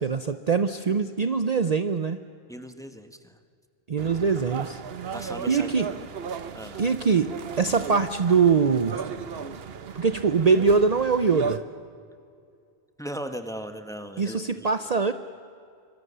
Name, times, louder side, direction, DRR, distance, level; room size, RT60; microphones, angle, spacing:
voice 1, 0.0-2.2 3.9-4.8 5.5-5.9 6.8-9.0 9.9-11.6 14.2-15.1, right 5 dB, 45° right, 10 dB, 0.8 m, -23 dB
voice 2, 2.5-3.4 5.1-6.1 6.5-6.8 13.0-14.7, equal, 5° left, 8 dB, 1.3 m, -38 dB
sound 1, 4.0-11.6, right 6 dB, 70° right, 1.1 m, -36 dB
25.0 x 24.5 x 6.9 m, 2.4 s
omnidirectional pair, 1.0 m